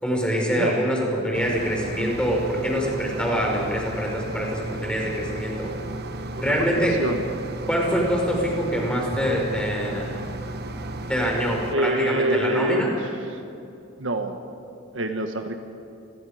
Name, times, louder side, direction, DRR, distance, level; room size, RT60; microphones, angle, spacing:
voice 1, 0.0-5.7 6.4-7.0 7.7-10.2 11.1-12.9, equal, 5° left, -2 dB, 5.3 m, -25 dB
sound 1, 1.3-11.8, right 2 dB, 55° right, 1.3 m, -34 dB
voice 2, 6.4-7.3 11.7-13.4 14.0-14.4 14.9-15.5, right 1 dB, 70° right, 6 dB, 1.5 m, -26 dB
29.5 x 22.0 x 5.1 m, 2.6 s
head